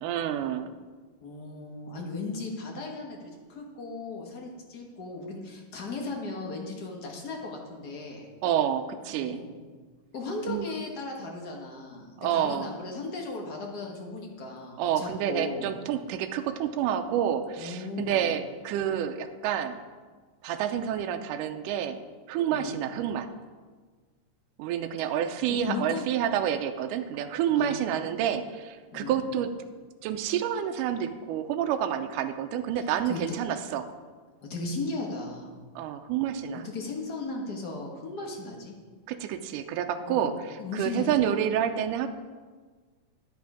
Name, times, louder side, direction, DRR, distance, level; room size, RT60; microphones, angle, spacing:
voice 1, 0.0-0.7 8.4-9.4 10.5-10.7 12.2-12.7 14.8-19.8 20.4-22.0 22.3-23.3 24.6-29.5 30.0-33.9 35.8-36.7 39.1-42.1, right 9 dB, 80° right, 7 dB, 2.1 m, -29 dB
voice 2, 1.2-8.3 9.2-9.5 10.1-15.7 17.6-18.3 22.5-22.8 25.5-26.1 27.5-27.8 28.9-29.2 32.7-33.3 34.5-35.5 36.5-38.7 40.0-40.3 40.6-41.2, left 3 dB, 65° left, 0 dB, 0.9 m, -36 dB
10.5 x 8.4 x 4.9 m, 1.4 s
omnidirectional pair, 3.8 m